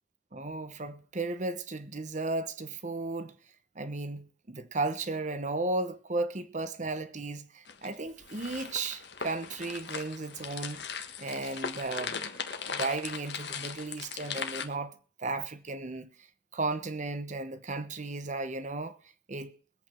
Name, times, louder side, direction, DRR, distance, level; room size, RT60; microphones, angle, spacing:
voice 1, 0.3-3.3 3.7-10.8 11.2-14.9 15.2-16.1 16.5-19.0 19.3-19.6, right 3 dB, 40° right, 1.0 m, -35 dB
sound 1, 7.7-14.6, left 6 dB, 65° left, 1.4 m, -39 dB
21.5 x 8.3 x 4.5 m
head